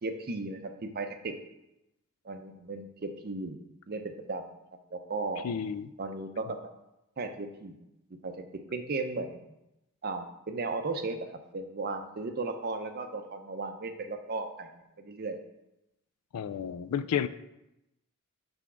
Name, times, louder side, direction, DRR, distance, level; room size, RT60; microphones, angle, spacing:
voice 1, 0.0-1.4 2.2-3.6 3.9-4.5 4.9-5.5 6.0-6.7 7.2-7.8 8.2-9.4 10.0-15.4, right 3 dB, 45° right, 7 dB, 0.5 m, -36 dB
voice 2, 5.4-5.9 16.3-17.3, left 8 dB, 80° left, 15 dB, 0.3 m, -31 dB
6.0 x 3.5 x 6.0 m, 0.91 s
head